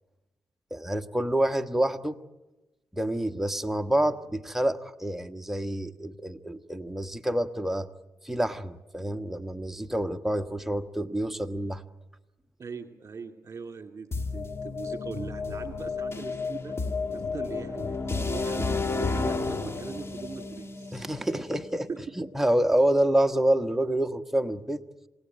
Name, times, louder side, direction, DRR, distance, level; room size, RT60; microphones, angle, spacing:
voice 1, 0.7-2.2 2.9-7.9 8.2-11.8 20.9-21.9 22.2-24.8, right 1 dB, 5° right, 7 dB, 1.4 m, -27 dB
voice 2, 12.6-16.8 17.1-18.0 18.3-21.0 21.9-22.0, right 5 dB, 45° right, 4 dB, 2.6 m, -40 dB
sound 1, 14.1-22.0, left 4 dB, 40° left, 2.4 m, -32 dB
28.0 x 17.5 x 9.2 m, 1.1 s
cardioid pair, 60°, 7 cm